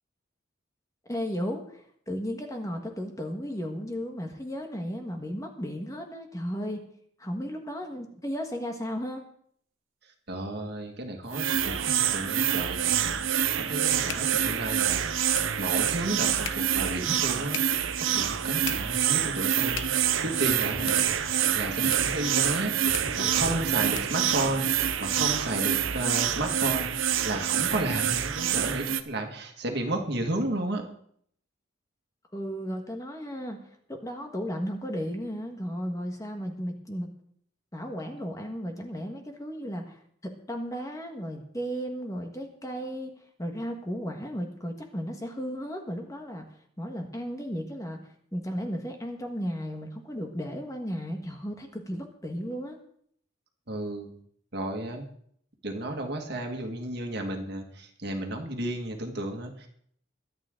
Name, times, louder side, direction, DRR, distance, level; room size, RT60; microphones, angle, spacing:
voice 1, 1.1-6.8 7.2-9.2 26.0-26.2 32.3-33.6 33.9-37.1 37.7-46.4 46.8-52.8, equal, 15° left, 4 dB, 1.5 m, -35 dB
voice 2, 10.0-15.1 15.6-17.6 18.1-21.1 21.6-22.7 23.0-30.9 53.7-54.1 54.5-55.1 55.6-59.7, right 1 dB, 55° right, 3 dB, 2.0 m, -33 dB
sound 1, 11.3-29.0, right 9 dB, 85° right, 0.8 m, -27 dB
sound 2, 13.8-24.3, left 8 dB, 70° left, 1.0 m, -44 dB
Gurgling, 20.4-25.1, left 1 dB, 55° left, 4.4 m, -42 dB
23.0 x 8.9 x 3.8 m, 0.66 s
head